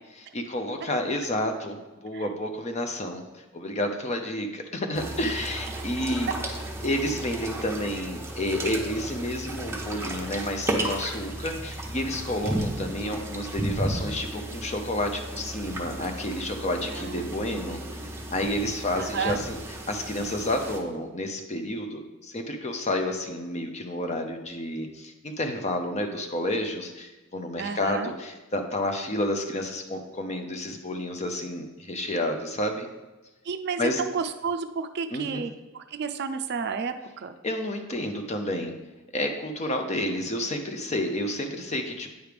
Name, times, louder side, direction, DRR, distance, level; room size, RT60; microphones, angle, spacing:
voice 1, 0.3-3.3 3.5-6.3 6.8-18.0 18.3-19.6 19.9-32.9 33.8-34.0 35.1-35.5 37.4-38.7 39.1-42.1, left 1 dB, 35° left, 5 dB, 0.7 m, -30 dB
sound 1, 4.9-20.8, right 1 dB, 10° right, 0.8 m, -34 dB
voice 2, 16.9-17.6 19.0-19.4 27.6-28.1 33.4-37.4, right 5 dB, 50° right, 9 dB, 0.4 m, -31 dB
9.3 x 3.2 x 5.1 m, 1.1 s
head